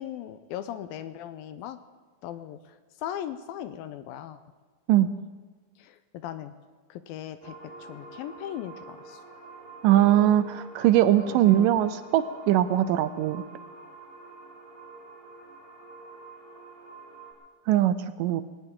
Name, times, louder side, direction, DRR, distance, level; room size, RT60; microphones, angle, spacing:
voice 1, 0.0-1.8 2.2-4.4 5.8-6.6 6.9-9.2 11.3-11.7, left 11 dB, 80° left, 11 dB, 2.4 m, -38 dB
sound 1, 7.4-17.3, right 3 dB, 15° right, 4.8 m, -47 dB
voice 2, 9.8-13.4 17.7-18.4, right 12 dB, 80° right, 13 dB, 2.0 m, -21 dB
20.0 x 18.5 x 3.8 m, 1.4 s
omnidirectional pair, 4.3 m